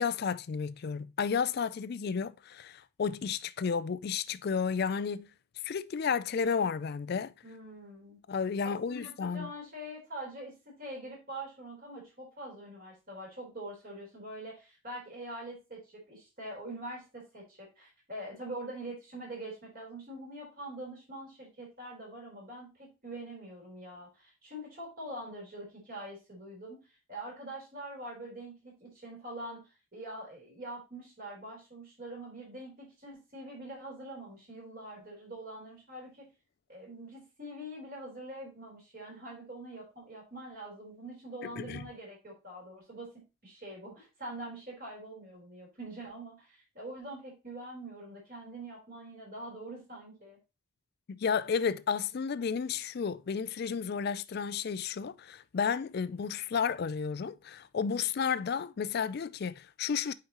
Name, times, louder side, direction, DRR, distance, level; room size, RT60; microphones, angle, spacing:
voice 1, 0.0-5.3 5.6-7.3 8.3-9.5 41.4-41.8 51.1-60.1, left 6 dB, 50° left, 0.3 m, -32 dB
voice 2, 7.4-8.2 8.9-26.8 27.1-36.3 36.7-43.1 43.4-50.4, right 1 dB, 45° right, 4.1 m, -44 dB
7.9 x 5.2 x 3.0 m
head